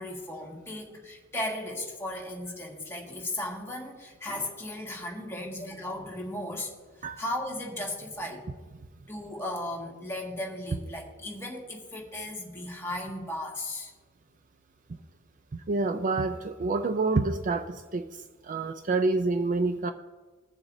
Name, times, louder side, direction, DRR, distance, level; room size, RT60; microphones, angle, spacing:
voice 1, 0.0-6.7 7.0-8.4 9.1-13.9, left 1 dB, 10° left, -2 dB, 1.8 m, -36 dB
voice 2, 15.5-18.1 18.4-19.9, right 3 dB, 40° right, 9 dB, 0.4 m, -27 dB
21.0 x 7.0 x 2.7 m, 1.3 s
head